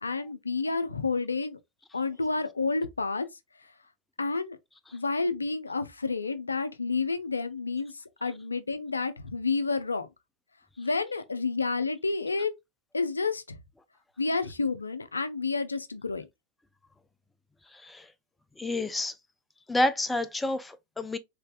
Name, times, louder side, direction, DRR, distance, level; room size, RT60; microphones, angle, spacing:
voice 1, 0.0-1.6 1.9-3.3 4.2-4.6 4.9-10.1 10.8-12.5 12.9-13.6 14.2-16.3, left 4 dB, 85° left, 0.4 m, -30 dB
voice 2, 18.6-19.1 19.7-21.2, left 1 dB, 10° left, 0.4 m, -29 dB
3.3 x 3.3 x 2.2 m
figure-of-eight pair, 90°, 0 cm